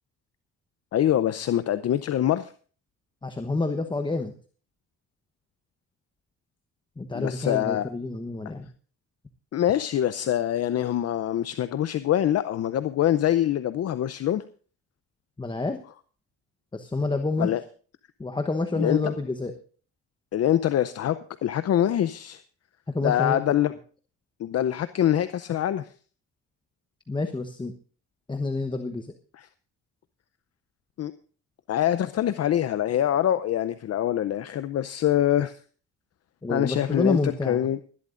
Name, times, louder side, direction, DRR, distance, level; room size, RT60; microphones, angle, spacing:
voice 1, 0.9-2.5 7.1-7.9 9.5-14.4 17.4-17.6 18.8-19.0 20.3-22.4 23.0-23.7 24.4-25.9 31.0-31.1 31.7-35.6 36.5-37.8, left 11 dB, 55° left, 13 dB, 0.6 m, -24 dB
voice 2, 3.2-4.3 7.0-8.7 15.4-15.8 16.7-17.5 18.2-19.5 22.9-23.5 27.1-27.7 28.3-29.1 36.4-37.7, left 3 dB, 15° left, 6 dB, 1.0 m, -28 dB
21.5 x 12.0 x 2.5 m, 0.40 s
cardioid pair, 90°, 30 cm